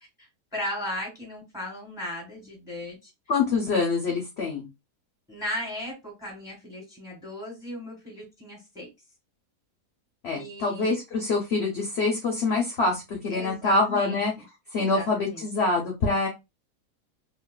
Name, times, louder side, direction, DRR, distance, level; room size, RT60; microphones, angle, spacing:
voice 1, 0.2-3.1 5.3-8.9 10.3-11.0 13.3-14.2 14.7-15.5, left 1 dB, ahead, -2 dB, 1.3 m, -36 dB
voice 2, 3.3-4.7 10.2-14.3 14.7-16.3, left 3 dB, 50° left, 0 dB, 0.8 m, -25 dB
3.0 x 2.5 x 2.2 m, 0.23 s
omnidirectional pair, 1.7 m